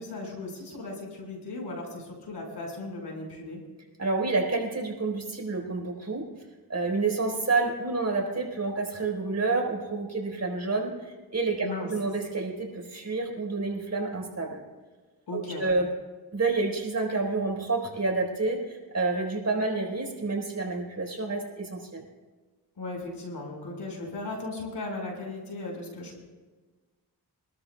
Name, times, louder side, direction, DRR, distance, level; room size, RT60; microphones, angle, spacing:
voice 1, 0.0-3.6 11.6-11.9 15.3-15.7 22.8-26.2, left 2 dB, 70° left, 0 dB, 5.4 m, -37 dB
voice 2, 4.0-6.2 6.7-14.6 15.3-15.9 16.3-22.0, right 3 dB, 40° right, 0 dB, 4.7 m, -29 dB
25.5 x 13.0 x 2.3 m, 1.3 s
cardioid pair, 65°, 43 cm